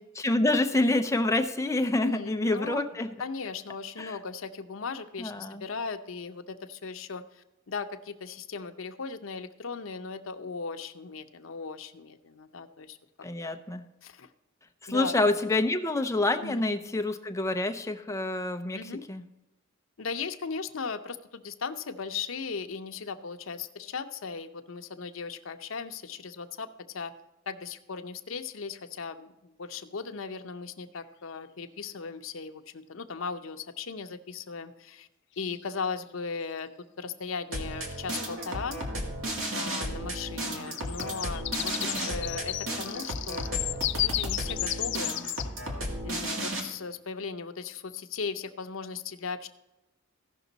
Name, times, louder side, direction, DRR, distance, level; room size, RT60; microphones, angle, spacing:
voice 1, 0.2-3.1 4.0-4.1 5.2-5.7 13.2-13.8 14.8-19.2, left 2 dB, 15° left, 7 dB, 0.6 m, -27 dB
voice 2, 2.0-2.9 3.2-13.0 13.4-13.6 14.0-14.3 14.9-15.3 16.4-16.6 18.7-19.0 20.0-27.1 27.5-35.1 35.4-36.7 37.0-38.8 39.5-43.6 43.9-45.2 46.0-49.5, left 5 dB, 85° left, 8 dB, 0.7 m, -37 dB
sound 1, 31.0-31.1 35.4-35.9 37.6-37.7 38.0-38.3 40.6-45.5, left 15 dB, 60° left, 0.3 m, -33 dB
sound 2, 37.5-46.6, right 1 dB, 75° right, 2.0 m, -34 dB
15.5 x 6.0 x 4.0 m, 1.0 s
head